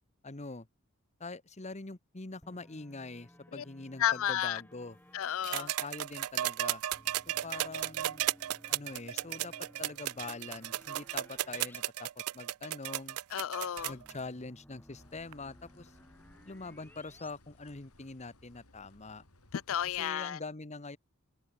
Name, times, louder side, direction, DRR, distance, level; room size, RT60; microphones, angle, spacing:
voice 1, 0.2-0.7 1.2-5.0 5.5-6.8 7.3-8.2 8.7-9.5 9.8-13.2 13.8-15.9 16.5-19.2 19.8-21.0, left 3 dB, 30° left, 1.3 m, -44 dB
sound 1, 2.4-5.5 6.9-11.8 12.1-12.2 13.8-17.3, equal, 10° left, 3.4 m, -58 dB
voice 2, 4.0-4.6 5.1-5.7 13.3-13.9 19.5-20.4, left 10 dB, 65° left, 0.5 m, -32 dB
sound 2, 5.4-14.1 15.3-15.4, right 14 dB, 80° right, 0.4 m, -35 dB
sound 3, 15.0-20.1, left 2 dB, 85° left, 3.9 m, -62 dB
head